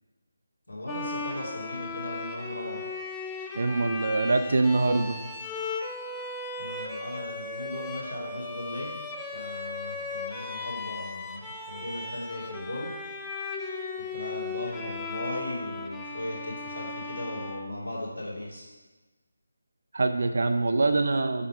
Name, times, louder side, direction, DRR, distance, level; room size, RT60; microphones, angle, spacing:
voice 1, 0.7-2.8 6.6-9.1 9.3-12.9 14.1-18.7, left 1 dB, 75° left, -5 dB, 2.8 m, -37 dB
Bowed string instrument, 0.9-18.3, left 3 dB, 5° left, 0.5 m, -37 dB
voice 2, 3.5-5.2 19.9-21.5, right 3 dB, 50° right, 7 dB, 0.6 m, -24 dB
8.9 x 3.5 x 6.4 m, 1.3 s
figure-of-eight pair, 155°, 0 cm